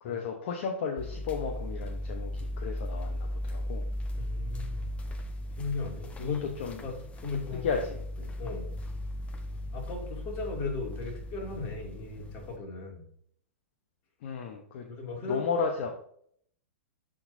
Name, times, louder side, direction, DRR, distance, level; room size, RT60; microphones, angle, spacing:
voice 1, 0.0-3.8 6.2-6.8 7.5-8.0 14.2-14.9 15.3-15.9, left 5 dB, 55° left, 3 dB, 0.9 m, -33 dB
sound 1, 1.0-12.6, left 1 dB, 15° left, 0.8 m, -37 dB
voice 2, 4.2-5.0 5.6-6.6 6.8-7.7 8.2-8.8 9.7-13.1 14.9-15.5, left 3 dB, 35° left, 0 dB, 2.3 m, -37 dB
11.5 x 3.9 x 2.7 m, 0.65 s
hypercardioid pair, 105°, 7 cm